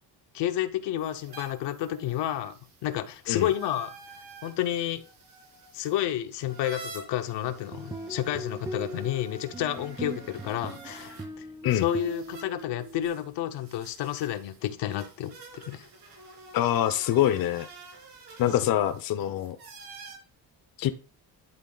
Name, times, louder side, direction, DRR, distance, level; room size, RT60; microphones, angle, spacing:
voice 1, 0.3-2.5 2.8-3.9 4.4-5.0 5.7-11.5 11.7-15.9 18.6-18.7, left 12 dB, 90° left, 0.9 m, -30 dB
sound 1, 0.9-11.3 11.6-20.2, right 3 dB, 65° right, 3.6 m, -48 dB
sound 2, 7.5-13.1, right 2 dB, 10° right, 0.5 m, -40 dB
voice 2, 16.5-17.7 18.4-19.6 20.8-20.9, left 12 dB, 55° left, 0.6 m, -25 dB
11.0 x 3.7 x 3.9 m
cardioid pair, 145°, 41 cm